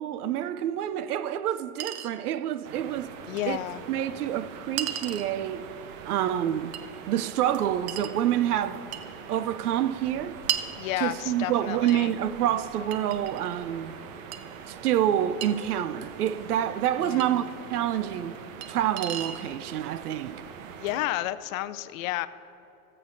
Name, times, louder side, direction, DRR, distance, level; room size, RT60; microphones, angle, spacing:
voice 1, 0.0-3.2 3.5-3.6 3.9-5.7 6.1-6.8 7.1-8.8 9.3-10.4 11.0-13.9 14.7-18.4 18.7-20.4, right 11 dB, 90° right, 0.6 m, -27 dB
Chink clink, 0.8-0.9 1.8-2.1 3.4-3.5 4.8-5.3 6.7-6.9 7.9-8.2 8.9-9.1 10.5-10.7 11.9-12.0 12.9-13.6 14.3-14.4 15.4-15.5 17.2-17.3 18.6-18.7 19.0-19.4, right 10 dB, 35° right, 0.5 m, -33 dB
sound 1, 2.6-21.1, right 7 dB, 60° right, 0.9 m, -43 dB
voice 2, 3.3-3.8 10.8-12.1 17.0-17.4 20.8-22.3, left 15 dB, 65° left, 0.5 m, -31 dB
18.5 x 7.7 x 2.6 m
hypercardioid pair, 110°, 44 cm